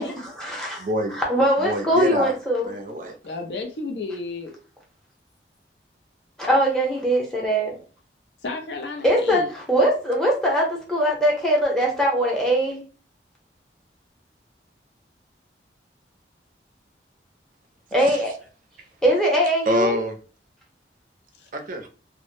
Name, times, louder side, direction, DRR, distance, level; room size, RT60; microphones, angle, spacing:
voice 1, 0.0-0.9 1.1-2.7 6.4-7.8 9.0-12.8 17.9-18.3 19.0-19.9, equal, 5° left, 0.7 m, -21 dB
voice 2, 0.8-1.2 1.6-2.3 2.6-3.2 18.0-18.2 19.7-20.2 21.5-21.9, equal, 50° right, 0.4 m, -26 dB
voice 3, 3.2-4.5 8.4-9.5 21.3-21.5, left 3 dB, 75° left, 0.5 m, -32 dB
2.0 x 2.0 x 3.0 m
head